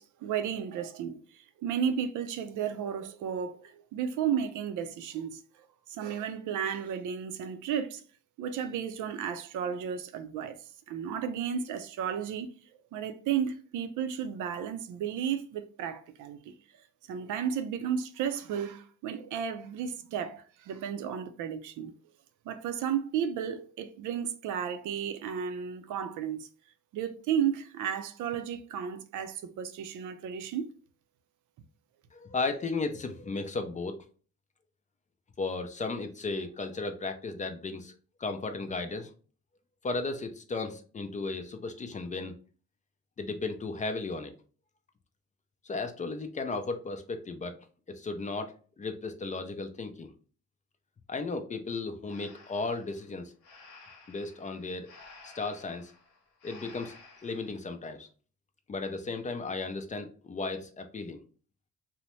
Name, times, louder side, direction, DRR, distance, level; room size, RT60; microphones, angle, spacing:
voice 1, 0.0-5.4 5.9-8.0 8.4-10.6 10.9-12.5 12.9-16.5 17.1-21.9 22.5-26.5 26.9-30.7, right 8 dB, 80° right, 0.5 m, -33 dB
voice 2, 32.1-34.0 35.4-37.9 38.2-39.1 39.8-42.3 43.2-44.3 45.6-47.6 47.9-50.1 51.1-53.3 54.1-54.9 55.2-55.9 56.4-57.0 57.2-58.1 58.7-61.2, left 3 dB, 25° left, 0.4 m, -35 dB
Breathing, 52.1-57.6, left 3 dB, 90° left, 0.8 m, -54 dB
2.7 x 2.1 x 3.0 m
cardioid pair, 90°, 30 cm